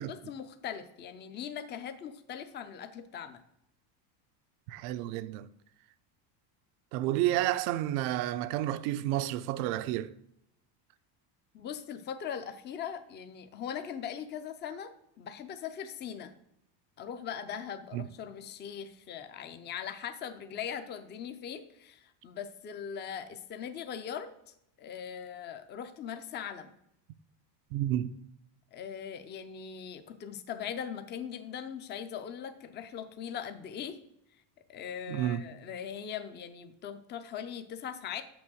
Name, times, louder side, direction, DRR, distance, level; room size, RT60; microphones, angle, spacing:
voice 1, 0.0-3.4 11.5-14.9 15.2-16.3 17.0-24.3 24.8-26.7 28.7-34.0 34.7-38.2, left 8 dB, 25° left, 0.5 m, -40 dB
voice 2, 4.7-5.5 6.9-10.1 17.9-18.0 27.7-28.2 35.1-35.5, right 13 dB, 75° right, 0.6 m, -30 dB
6.6 x 6.1 x 6.3 m
cardioid pair, 155°, 50 cm